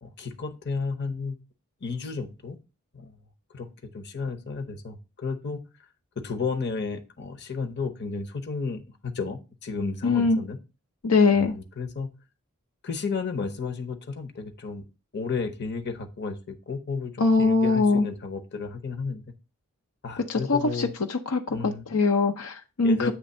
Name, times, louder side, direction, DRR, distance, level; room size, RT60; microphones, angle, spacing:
voice 1, 0.0-1.4 1.8-2.6 2.9-3.1 3.5-5.6 6.2-10.6 11.3-12.1 12.8-14.8 15.1-19.2 20.0-20.9 21.5-21.9 22.8-23.1, left 4 dB, 50° left, 7 dB, 0.9 m, -32 dB
voice 2, 10.0-10.4 11.0-11.5 17.2-18.1 20.3-23.1, left 4 dB, 80° left, 6 dB, 0.7 m, -22 dB
8.2 x 3.4 x 5.5 m, 0.30 s
head